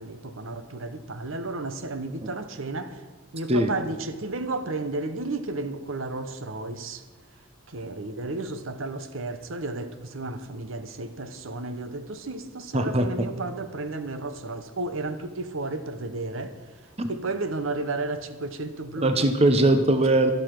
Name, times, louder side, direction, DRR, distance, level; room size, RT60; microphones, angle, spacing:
voice 1, 0.0-3.0 3.3-7.0 7.7-16.6 17.1-19.1, right 2 dB, 70° right, 0.9 m, -33 dB
voice 2, 12.7-13.1 17.0-17.1 19.0-20.3, right 1 dB, 30° right, 0.8 m, -20 dB
12.5 x 11.5 x 5.9 m
head